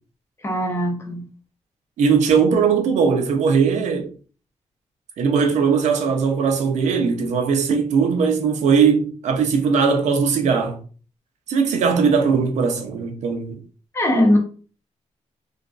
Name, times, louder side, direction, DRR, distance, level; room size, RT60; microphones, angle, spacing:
voice 1, 0.4-1.3 13.9-14.4, left 1 dB, 20° left, 0.8 m, -20 dB
voice 2, 2.0-4.1 5.2-10.8 11.5-13.6, right 5 dB, 90° right, 0.6 m, -19 dB
3.0 x 2.4 x 2.4 m
cardioid pair, 125°, 12 cm